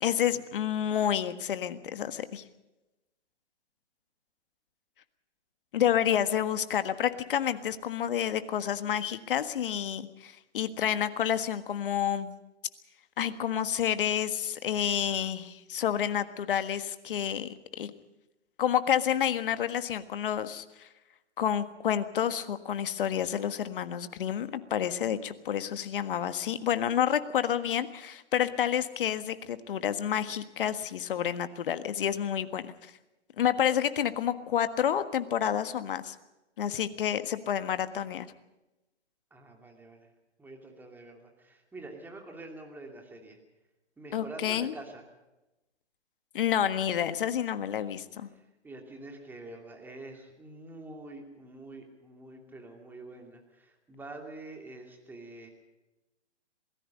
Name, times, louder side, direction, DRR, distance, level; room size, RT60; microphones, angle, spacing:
voice 1, 0.0-2.4 5.7-12.3 13.2-17.9 18.6-20.9 21.4-32.7 33.4-36.1 36.6-38.3 44.1-44.7 46.3-48.3, left 9 dB, 50° left, 11 dB, 1.6 m, -29 dB
voice 2, 39.3-40.1 40.4-43.4 44.0-45.0 48.3-55.5, right 2 dB, 5° right, 2 dB, 2.7 m, -46 dB
27.0 x 18.5 x 5.3 m, 0.99 s
hypercardioid pair, 140°, 35 cm